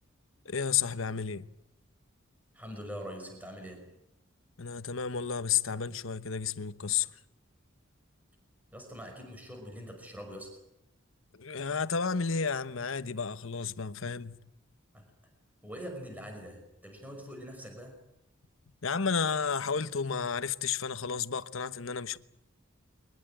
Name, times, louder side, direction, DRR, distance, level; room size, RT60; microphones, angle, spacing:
voice 1, 0.4-1.5 4.6-7.1 11.3-14.4 18.8-22.2, left 6 dB, 70° left, 1.0 m, -32 dB
voice 2, 2.5-3.9 8.7-10.6 14.9-15.1 15.6-18.0, equal, 10° right, 5.5 m, -43 dB
23.5 x 20.5 x 9.2 m
head